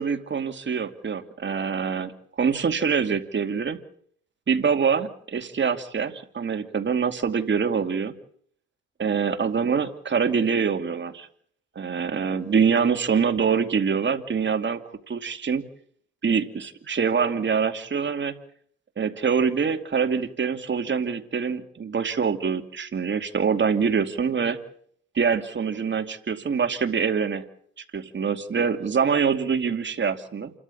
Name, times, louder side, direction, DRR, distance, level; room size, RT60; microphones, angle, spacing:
voice 1, 0.0-2.1 2.4-3.8 4.5-8.1 9.0-11.3 11.8-14.8 15.1-15.6 16.2-18.3 19.0-24.6 25.1-27.5 27.9-30.5, right 6 dB, 40° right, 7 dB, 2.5 m, -25 dB
28.5 x 13.5 x 8.6 m, 0.63 s
cardioid pair, 90°, 30 cm